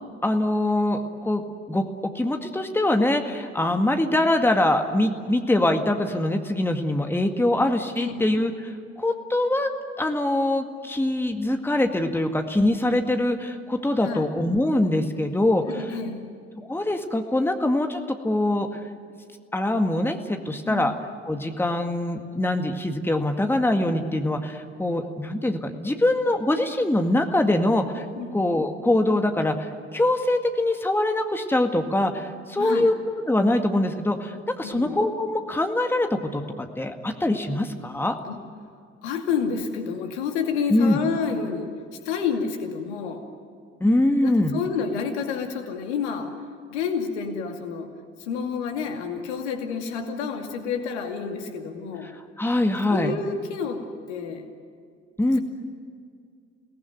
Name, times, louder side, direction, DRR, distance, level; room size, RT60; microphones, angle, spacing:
voice 1, 0.2-1.4 1.7-1.9 2.2-9.7 10.0-15.9 16.7-18.8 19.5-20.9 21.2-28.1 28.3-32.9 33.3-38.1 40.7-41.0 43.8-44.5 52.4-53.1 55.2-55.4, left 1 dB, 5° left, 5 dB, 1.9 m, -23 dB
voice 2, 15.6-16.3 20.6-21.0 28.1-28.4 32.6-32.9 34.6-35.0 38.3-38.4 39.0-43.3 44.2-46.3 46.7-47.9 48.2-52.1 52.9-54.5 55.3-55.4, left 6 dB, 65° left, 5 dB, 2.5 m, -29 dB
29.5 x 19.0 x 9.4 m, 2.2 s
figure-of-eight pair, 55°, 36 cm